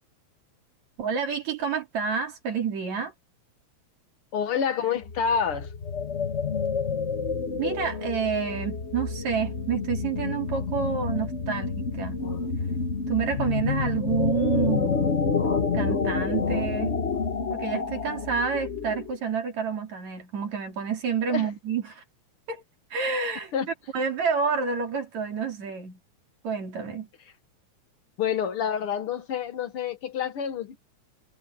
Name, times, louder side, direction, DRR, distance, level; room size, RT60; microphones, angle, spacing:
voice 1, 1.0-3.1 7.6-12.2 13.1-15.2 15.7-16.9 17.5-22.0 22.5-22.6 22.9-23.5 23.9-26.0 26.4-27.1, right 6 dB, 65° right, 4.6 m, -29 dB
voice 2, 4.3-5.7 21.3-21.5 23.5-23.7 28.2-30.8, left 7 dB, 60° left, 1.7 m, -28 dB
sound 1, 5.0-19.2, left 5 dB, 85° left, 0.6 m, -28 dB
omnidirectional pair, 3.4 m